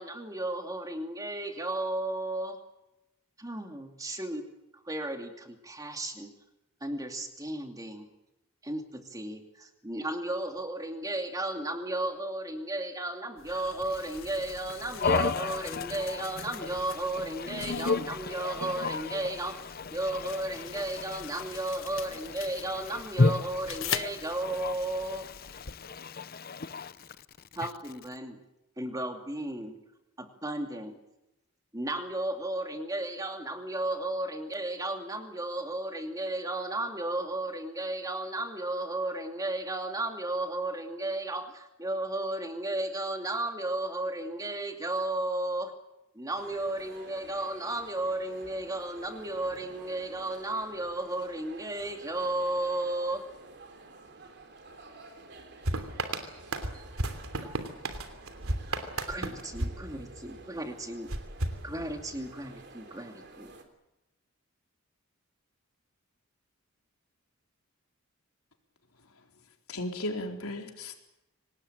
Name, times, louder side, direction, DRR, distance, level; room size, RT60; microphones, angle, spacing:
voice 1, 0.0-2.6 3.4-4.4 4.9-6.3 6.8-8.1 8.6-19.6 19.9-25.3 27.6-28.4 28.8-29.8 30.2-31.0 31.7-45.7 46.1-53.2 56.3-56.4 56.7-56.9 57.4-57.5 59.1-61.1 61.6-63.5, right 1 dB, 15° right, 2.6 m, -34 dB
sound 1, 13.4-25.7, left 9 dB, 60° left, 1.1 m, -43 dB
voice 2, 15.0-27.1 27.6-27.7, left 3 dB, 45° left, 0.8 m, -33 dB
sound 2, 46.4-63.6, right 3 dB, 50° right, 3.5 m, -51 dB
sound 3, 55.6-60.5 61.1-62.3, right 2 dB, 80° right, 3.1 m, -35 dB
voice 3, 69.7-70.9, left 1 dB, 90° left, 4.1 m, -35 dB
25.5 x 19.0 x 9.0 m
head